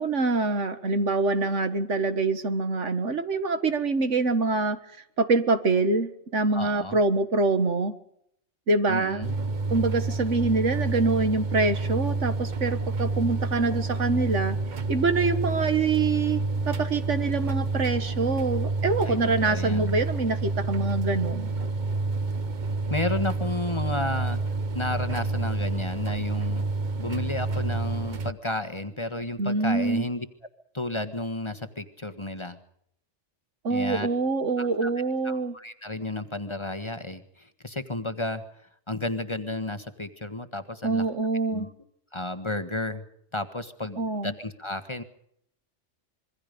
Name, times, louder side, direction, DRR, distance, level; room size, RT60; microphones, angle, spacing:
voice 1, 0.0-4.8 5.2-7.9 8.7-9.2 9.7-14.6 14.9-16.4 16.7-21.5 29.4-30.1 33.6-35.6 40.8-41.7 44.0-44.3, right 3 dB, 80° right, 10 dB, 2.0 m, -25 dB
voice 2, 6.5-7.0 8.9-9.4 19.0-20.0 22.9-24.4 24.7-26.6 27.0-30.3 30.7-32.6 33.7-34.1 34.6-34.9 35.2-38.4 38.9-41.0 41.5-41.7 42.1-43.0 43.3-45.0, left 2 dB, 25° left, 9 dB, 1.5 m, -32 dB
sound 1, 9.2-28.3, right 3 dB, 40° right, 1.0 m, -29 dB
26.5 x 23.0 x 5.3 m, 0.71 s
omnidirectional pair, 1.2 m